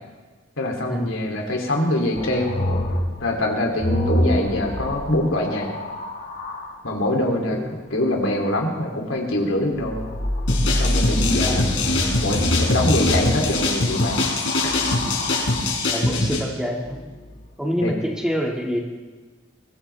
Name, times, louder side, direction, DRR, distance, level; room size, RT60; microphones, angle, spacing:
voice 1, 0.6-2.6 3.2-5.7 6.8-10.0 10.8-11.8 12.2-14.2 14.6-14.7 17.8-17.9, left 1 dB, 90° left, 0 dB, 2.8 m, -24 dB
sound 1, 2.2-6.8 9.8-15.9 16.8-17.5, left 1 dB, 50° left, 1.6 m, -26 dB
sound 2, 10.5-16.4, left 2 dB, 75° left, 3.8 m, -23 dB
voice 2, 15.9-17.0 17.6-18.8, equal, 5° right, -1 dB, 1.9 m, -26 dB
22.0 x 16.0 x 3.4 m, 1.3 s
head